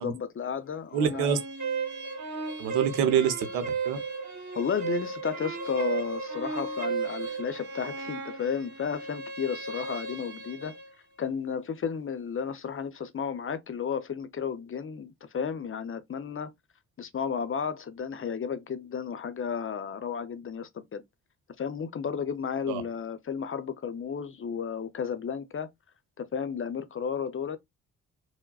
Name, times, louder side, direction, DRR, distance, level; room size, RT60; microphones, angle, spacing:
voice 1, 0.0-1.4 4.5-10.7 11.2-16.5 17.0-21.0 21.6-25.7 26.2-27.6, left 7 dB, 35° left, 0.6 m, -33 dB
voice 2, 0.9-1.4 2.6-4.0 22.7-22.8, right 8 dB, 80° right, 0.7 m, -26 dB
sound 1, 1.0-10.9, right 4 dB, 50° right, 1.3 m, -35 dB
4.4 x 2.1 x 2.3 m
hypercardioid pair, 40°, 38 cm